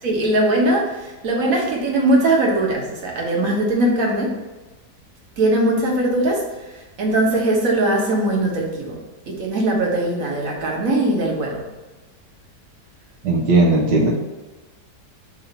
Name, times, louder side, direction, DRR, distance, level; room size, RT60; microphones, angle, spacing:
voice 1, 0.0-4.3 5.4-6.4 6.7-9.0 9.3-11.6, right 1 dB, 55° right, -2 dB, 1.6 m, -20 dB
voice 2, 13.2-14.1, right 2 dB, 80° right, -3 dB, 1.5 m, -16 dB
6.9 x 2.8 x 5.4 m, 1.2 s
omnidirectional pair, 1.8 m